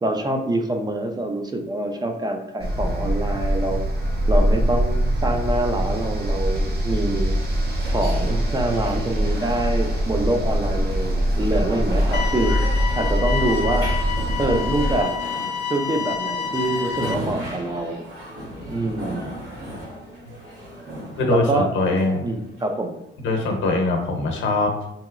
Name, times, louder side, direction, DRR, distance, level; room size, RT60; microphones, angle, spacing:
voice 1, 0.0-3.8 4.3-7.4 7.9-12.6 13.0-13.9 14.4-15.2 15.7-18.0 18.7-19.3 21.3-21.7 22.2-23.0, right 1 dB, 20° right, 4 dB, 0.4 m, -25 dB
sound 1, 2.6-15.0, equal, 50° right, 0.7 m, -23 dB
sound 2, 6.3-23.0, right 1 dB, 70° right, 1.3 m, -36 dB
sound 3, 12.1-17.1, left 6 dB, 55° left, 0.4 m, -28 dB
voice 2, 21.2-22.2 23.2-24.9, left 2 dB, 80° left, 2 dB, 0.7 m, -22 dB
2.9 x 2.8 x 2.4 m, 0.81 s
cardioid pair, 90°, 20 cm